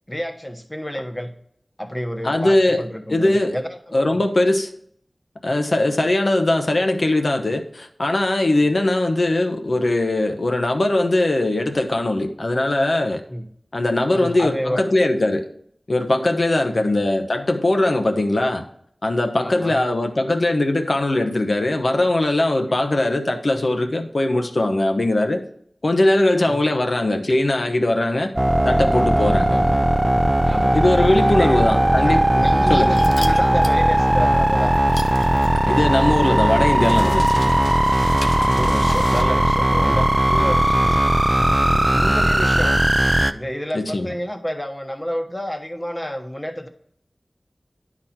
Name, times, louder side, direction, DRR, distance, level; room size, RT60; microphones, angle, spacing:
voice 1, 0.1-1.3 1.8-4.3 8.6-8.7 13.3-13.5 14.1-14.8 16.7-16.9 19.4-19.8 22.7-22.8 26.7-26.8 29.1-29.8 30.5-30.8 31.3-31.6 32.0-34.8 38.1-41.0 41.7-42.8 43.3-46.7, equal, 20° left, 6 dB, 1.0 m, -29 dB
voice 2, 2.2-2.8 3.1-3.5 3.9-4.7 5.4-13.2 13.7-15.4 15.9-18.6 19.0-25.4 25.8-28.3 28.6-29.6 30.7-32.2 32.7-33.0 35.6-37.5 43.7-44.1, left 1 dB, 65° left, 5 dB, 0.9 m, -20 dB
sound 1, 28.4-43.3, right 1 dB, 20° right, 0.4 m, -18 dB
sound 2, 32.4-39.2, left 2 dB, 85° left, 0.6 m, -36 dB
10.5 x 4.2 x 4.3 m, 0.66 s
wide cardioid pair, 50°, 0 cm